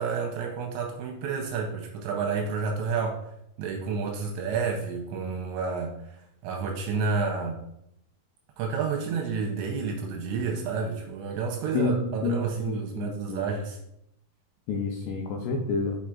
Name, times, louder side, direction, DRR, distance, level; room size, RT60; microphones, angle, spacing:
voice 1, 0.0-3.2 3.6-7.6 8.6-13.8, right 5 dB, 80° right, 1 dB, 2.8 m, -30 dB
voice 2, 11.7-13.5 14.7-16.0, left 3 dB, 85° left, 1 dB, 2.4 m, -29 dB
6.6 x 5.9 x 2.4 m, 0.78 s
omnidirectional pair, 5.7 m